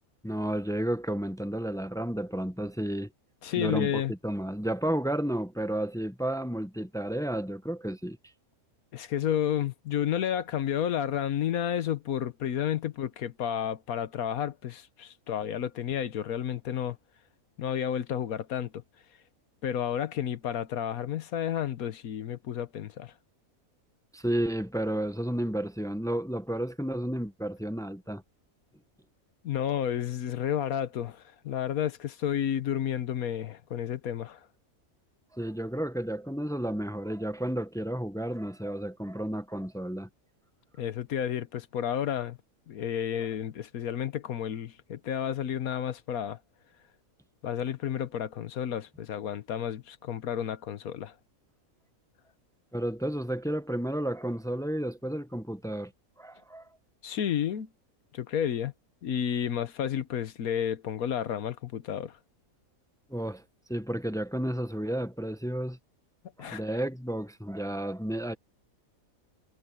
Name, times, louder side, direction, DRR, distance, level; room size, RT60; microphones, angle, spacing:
voice 1, 0.2-3.1 3.6-8.2 24.1-28.2 35.3-40.1 52.7-55.9 56.2-56.7 63.1-63.4 63.7-65.8 66.4-68.3, right 1 dB, 5° left, 0.5 m, -32 dB
voice 2, 3.4-4.1 8.9-17.0 17.6-18.8 19.6-23.1 29.4-34.4 40.8-42.4 42.7-46.4 47.4-51.1 57.0-57.7 58.1-58.7 59.0-62.2 66.4-66.6, left 9 dB, 85° left, 1.4 m, -31 dB
omnidirectional pair, 1.5 m